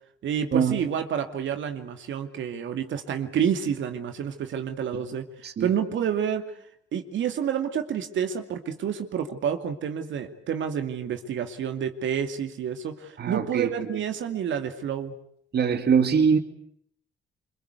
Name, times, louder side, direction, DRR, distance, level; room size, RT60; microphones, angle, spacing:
voice 1, 0.2-6.5 6.9-15.2, right 8 dB, 70° right, 2.5 m, -29 dB
voice 2, 13.2-14.0 15.5-16.4, right 6 dB, 55° right, 2.4 m, -23 dB
25.5 x 24.5 x 8.3 m
cardioid pair, 90°, 20 cm